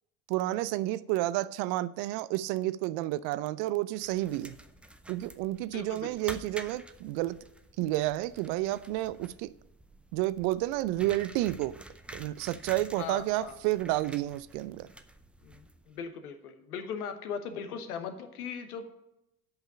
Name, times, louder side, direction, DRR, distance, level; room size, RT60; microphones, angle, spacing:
voice 1, 0.3-4.6 5.1-7.4 7.8-9.5 10.1-11.8 12.1-14.9, right 16 dB, 55° right, 17 dB, 0.6 m, -30 dB
sound 1, 3.9-16.0, right 1 dB, 5° right, 0.5 m, -49 dB
voice 2, 5.7-6.1 12.9-13.6 15.4-18.9, left 6 dB, 80° left, 8 dB, 1.2 m, -39 dB
8.1 x 5.5 x 7.1 m, 0.87 s
hypercardioid pair, 70°, 45 cm